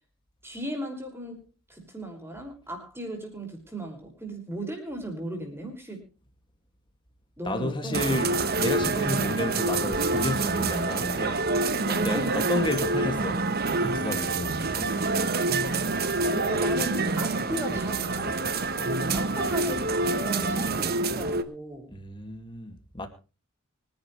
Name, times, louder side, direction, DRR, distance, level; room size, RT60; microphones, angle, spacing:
voice 1, 0.4-6.0 7.4-8.0 11.7-12.6 16.3-18.4 18.8-21.9, right 1 dB, 10° right, 5.6 m, -36 dB
voice 2, 7.4-11.5 11.8-13.5 13.8-14.9 21.9-23.1, left 2 dB, 25° left, 2.4 m, -31 dB
sound 1, 7.9-21.4, right 3 dB, 45° right, 1.2 m, -27 dB
24.5 x 11.0 x 3.4 m
head